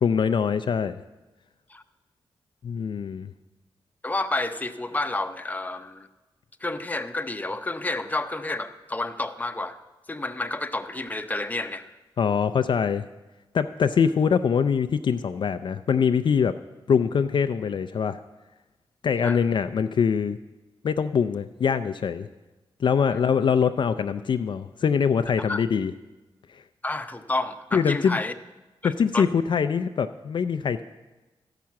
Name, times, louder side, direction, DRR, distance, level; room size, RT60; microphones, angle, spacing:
voice 1, 0.0-1.0 2.6-3.3 12.2-13.1 13.5-16.6 16.9-18.2 19.0-20.4 20.8-22.3 22.8-25.9 26.5-26.6 27.7-28.2 28.8-30.8, left 6 dB, 60° left, 10 dB, 0.4 m, -23 dB
voice 2, 4.0-6.1 6.6-9.8 10.1-11.9 19.2-19.4 23.1-23.2 25.5-25.6 26.8-28.3 28.8-29.3, left 2 dB, 15° left, 8 dB, 0.7 m, -30 dB
12.5 x 5.8 x 7.4 m, 1.1 s
cardioid pair, 70°, 9 cm